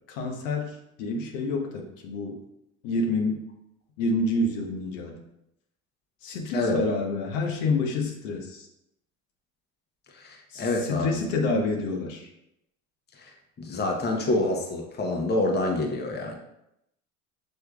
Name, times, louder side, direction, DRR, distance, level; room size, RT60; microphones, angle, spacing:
voice 1, 0.1-2.4 2.8-3.4 4.0-5.2 6.2-8.7 10.5-12.3, left 2 dB, 75° left, 2 dB, 0.9 m, -28 dB
voice 2, 10.1-11.2 13.2-13.3 13.6-16.3, left 2 dB, 25° left, 2 dB, 0.9 m, -27 dB
6.5 x 3.3 x 2.3 m, 0.81 s
hypercardioid pair, 85°, 38 cm